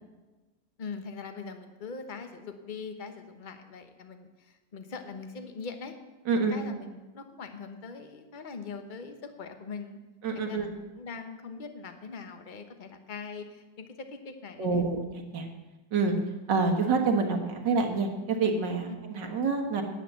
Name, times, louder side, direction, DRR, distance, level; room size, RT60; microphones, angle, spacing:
voice 1, 0.8-5.9 6.3-10.0 10.3-14.8, left 5 dB, 35° left, 7 dB, 1.0 m, -42 dB
voice 2, 6.3-6.6 10.2-10.7 14.6-15.5 15.9-16.2 16.5-19.8, right 4 dB, 85° right, 3 dB, 2.2 m, -27 dB
11.0 x 8.9 x 7.0 m, 1.1 s
omnidirectional pair, 1.9 m